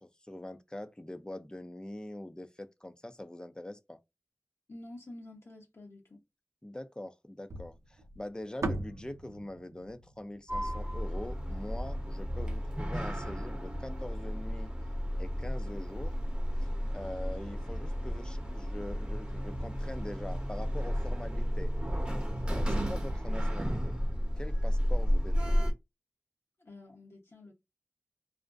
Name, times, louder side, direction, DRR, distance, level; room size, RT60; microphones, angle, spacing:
voice 1, 0.0-4.0 6.6-14.7 15.2-16.1 16.9-21.7 22.4-24.0 24.4-25.6, left 1 dB, 15° left, 0.4 m, -43 dB
voice 2, 4.7-6.2 26.6-27.5, left 1 dB, 55° left, 0.8 m, -49 dB
sound 1, 7.5-11.8, right 2 dB, 75° right, 0.5 m, -40 dB
Sliding door, 10.5-25.7, equal, 20° right, 0.8 m, -32 dB
2.5 x 2.1 x 2.4 m
cardioid pair, 45°, 5 cm